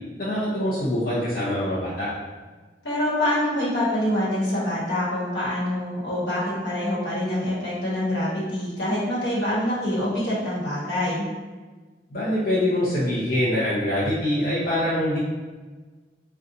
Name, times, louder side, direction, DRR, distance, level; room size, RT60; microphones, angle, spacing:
voice 1, 0.2-2.1 12.1-15.2, left 1 dB, 55° left, -10 dB, 0.7 m, -24 dB
voice 2, 2.8-11.2, left 1 dB, 80° left, -7 dB, 1.2 m, -25 dB
2.6 x 2.3 x 3.9 m, 1.3 s
head